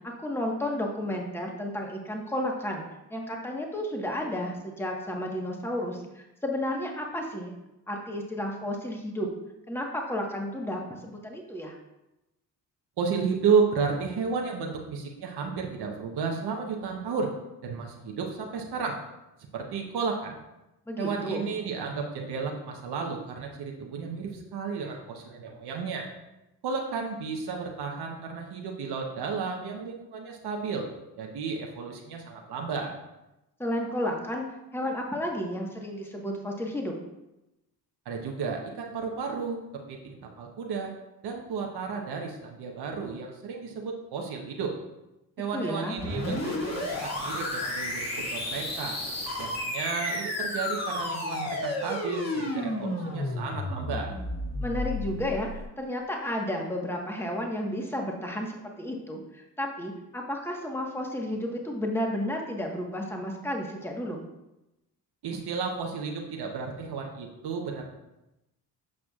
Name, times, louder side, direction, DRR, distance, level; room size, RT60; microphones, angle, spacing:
voice 1, 0.0-2.8 3.1-7.5 7.9-9.3 9.7-11.8 20.9-21.5 33.6-34.5 34.7-36.9 45.5-45.9 54.6-55.5 55.8-64.2, left 1 dB, 5° left, 0 dB, 1.4 m, -32 dB
voice 2, 13.0-17.3 17.6-19.0 19.5-20.4 21.0-26.1 26.6-30.9 31.2-32.9 38.0-40.9 41.2-44.7 45.4-49.0 49.4-54.1 65.2-67.8, right 5 dB, 70° right, 1 dB, 1.0 m, -32 dB
sound 1, 46.0-55.6, left 1 dB, 40° left, 2.1 m, -32 dB
8.7 x 6.0 x 2.4 m, 0.94 s
supercardioid pair, 55°, 41 cm